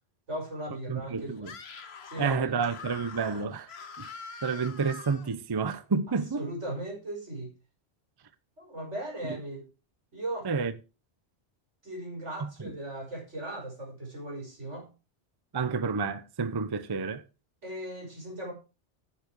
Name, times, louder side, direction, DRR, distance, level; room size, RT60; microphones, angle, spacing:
voice 1, 0.3-1.5 2.0-2.5 6.4-7.5 8.6-9.7 10.1-10.5 11.8-14.9 17.6-18.5, right 1 dB, 90° right, 5.4 m, -37 dB
voice 2, 0.9-1.5 2.2-3.7 4.0-4.1 4.4-6.4 10.4-10.7 12.4-12.7 15.5-17.2, right 5 dB, 25° right, 0.6 m, -30 dB
Screaming, 1.4-5.3, left 5 dB, 65° left, 1.3 m, -44 dB
9.6 x 7.1 x 4.8 m
omnidirectional pair, 1.2 m